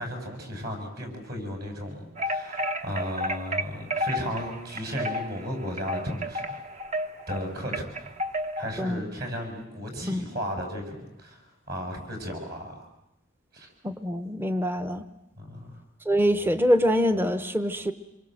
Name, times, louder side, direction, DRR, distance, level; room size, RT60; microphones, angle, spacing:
voice 1, 0.0-6.6 7.3-7.9 8.6-12.9 13.5-13.7 15.4-15.8, equal, 50° right, 4 dB, 7.1 m, -35 dB
sound 1, 2.2-8.8, equal, 35° right, 1.2 m, -32 dB
voice 2, 13.8-15.0 16.0-17.9, equal, 10° right, 10 dB, 0.9 m, -24 dB
27.0 x 23.5 x 7.8 m, 0.85 s
head